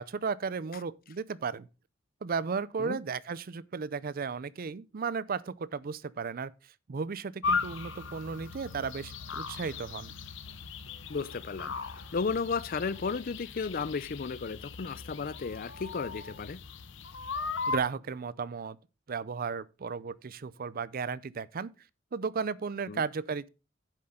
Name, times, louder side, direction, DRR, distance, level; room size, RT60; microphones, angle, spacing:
voice 1, 0.0-1.7 2.2-6.5 6.9-10.1 17.7-18.8 19.1-21.7 22.1-23.5, right 5 dB, 50° right, 0.5 m, -34 dB
sound 1, 7.4-17.8, left 4 dB, 70° left, 0.9 m, -37 dB
voice 2, 11.1-16.6 22.9-23.1, left 5 dB, 45° left, 0.5 m, -34 dB
9.9 x 7.6 x 3.7 m
head